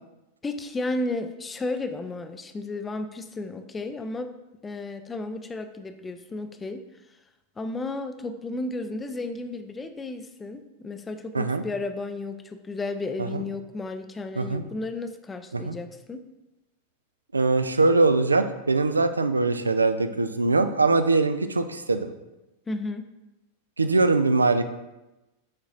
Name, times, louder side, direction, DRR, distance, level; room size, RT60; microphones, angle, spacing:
voice 1, 0.4-4.3 4.6-6.8 7.6-16.2 22.7-23.1, left 2 dB, 15° left, 9 dB, 0.4 m, -33 dB
voice 2, 17.3-22.1 23.8-24.7, right 3 dB, 80° right, 11 dB, 0.4 m, -22 dB
9.5 x 4.0 x 2.6 m, 1.0 s
figure-of-eight pair, 90°, 0 cm